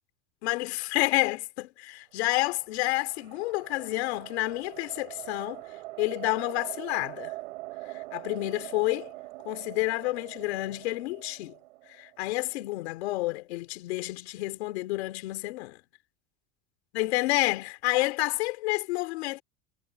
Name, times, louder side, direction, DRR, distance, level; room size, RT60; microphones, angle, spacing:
voice 1, 0.4-5.6 6.0-7.3 7.9-9.1 9.5-11.6 11.9-15.8 16.9-19.4, left 20 dB, 80° left, 3.4 m, -29 dB
sound 1, 2.3-12.8, right 20 dB, 85° right, 6.1 m, -43 dB
supercardioid pair, 160°, 32 cm